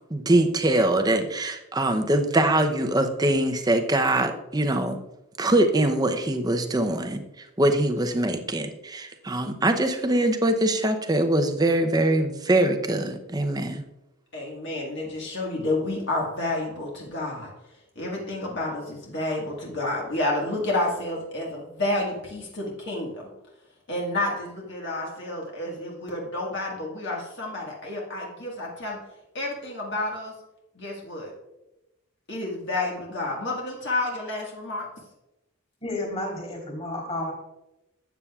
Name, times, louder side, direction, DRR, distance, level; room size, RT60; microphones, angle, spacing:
voice 1, 0.1-5.0 5.4-7.2 7.6-13.8, right 1 dB, 20° right, 6 dB, 0.6 m, -23 dB
voice 2, 14.3-17.5 17.9-23.3 23.9-29.0 29.3-30.3 30.7-31.3 32.3-34.9, left 2 dB, 55° left, -3 dB, 1.7 m, -30 dB
voice 3, 35.8-37.3, left 1 dB, 30° left, -1 dB, 3.4 m, -31 dB
12.5 x 8.3 x 2.4 m, 0.96 s
head